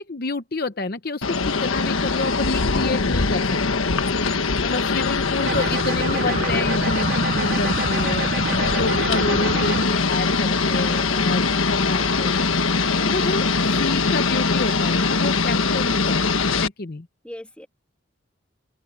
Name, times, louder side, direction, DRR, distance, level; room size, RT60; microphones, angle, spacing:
voice 1, 0.0-3.6 4.6-12.4 13.0-17.1, left 3 dB, 45° left, 0.8 m, -29 dB
sound 1, 1.2-16.7, left 4 dB, 85° left, 1.4 m, -22 dB
sound 2, 5.2-13.0, right 1 dB, 90° right, 4.8 m, -48 dB
sound 3, 5.5-9.9, right 5 dB, 45° right, 0.5 m, -28 dB
voice 2, 17.2-17.7, equal, 5° left, 2.5 m, -42 dB
open air
head